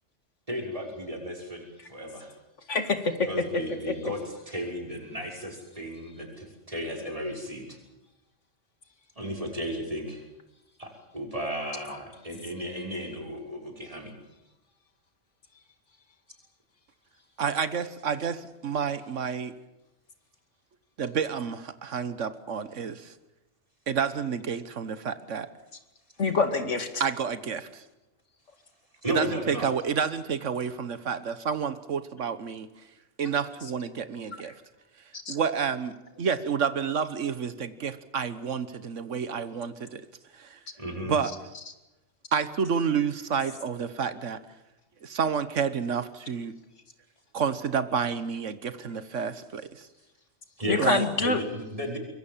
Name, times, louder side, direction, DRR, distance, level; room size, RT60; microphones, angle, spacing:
voice 1, 0.5-2.3 3.3-7.8 9.2-10.2 10.8-14.1 29.0-29.7 40.8-41.2 50.6-50.9 51.2-52.0, equal, 30° right, 1 dB, 6.0 m, -34 dB
voice 2, 2.7-3.1 3.9-4.0 26.2-27.0 35.3-35.4 50.7-51.4, left 3 dB, 80° left, 7 dB, 2.6 m, -25 dB
voice 3, 17.4-19.5 21.0-23.1 23.9-25.5 27.0-27.8 29.1-32.7 33.2-34.5 35.3-40.0 40.3-40.6 41.1-41.3 42.3-44.4 45.0-46.5 47.3-49.9 50.8-51.0, right 6 dB, 85° right, 13 dB, 1.5 m, -29 dB
24.5 x 23.0 x 7.4 m, 0.97 s
omnidirectional pair, 1.2 m